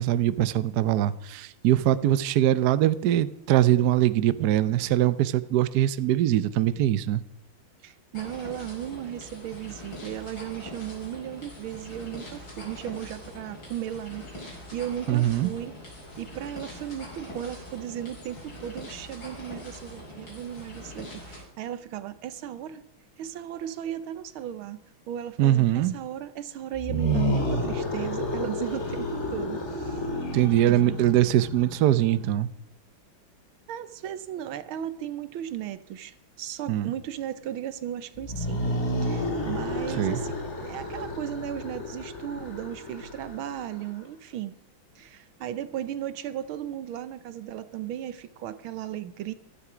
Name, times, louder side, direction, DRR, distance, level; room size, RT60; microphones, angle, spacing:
voice 1, 0.0-7.2 15.1-15.5 25.4-25.9 30.3-32.5 36.7-36.9 40.0-40.2, right 12 dB, 65° right, 15 dB, 1.0 m, -22 dB
voice 2, 7.8-15.8 16.2-22.8 23.2-30.0 30.7-31.0 33.7-44.6 45.0-49.3, right 11 dB, 85° right, 14 dB, 1.7 m, -36 dB
sound 1, 8.1-21.4, left 1 dB, 70° left, 6.1 m, -43 dB
sound 2, 26.7-31.9 38.2-43.8, equal, 35° left, 2.6 m, -31 dB
15.5 x 13.0 x 4.9 m, 0.79 s
omnidirectional pair, 2.2 m